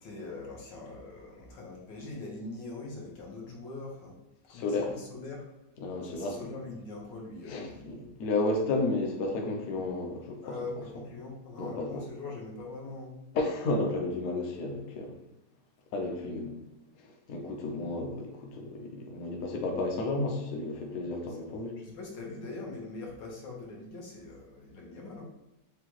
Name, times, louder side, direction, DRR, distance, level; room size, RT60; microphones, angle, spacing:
voice 1, 0.0-4.1 4.5-5.5 6.0-8.1 10.4-13.2 21.3-21.4 21.8-25.3, left 3 dB, 85° left, -2 dB, 1.8 m, -42 dB
voice 2, 4.5-4.9 5.8-6.5 7.5-10.4 11.6-12.0 13.3-15.2 15.9-16.6 17.0-21.8, left 2 dB, 60° left, 1 dB, 1.1 m, -32 dB
6.8 x 2.4 x 3.0 m, 0.98 s
omnidirectional pair, 1.9 m